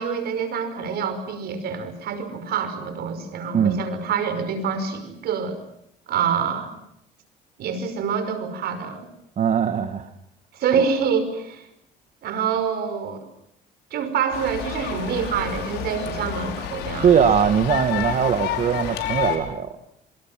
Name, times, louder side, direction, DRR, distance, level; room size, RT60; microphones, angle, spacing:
voice 1, 0.0-5.6 6.1-6.8 7.6-9.1 10.5-11.7 12.2-13.3 13.9-17.2, right 6 dB, 70° right, 10 dB, 5.6 m, -26 dB
voice 2, 9.4-10.1 17.0-19.7, right 8 dB, 45° right, 8 dB, 1.8 m, -20 dB
sound 1, 14.3-19.4, left 10 dB, 85° left, 5.4 m, -30 dB
26.5 x 25.5 x 7.5 m, 0.76 s
cardioid pair, 110°, 17 cm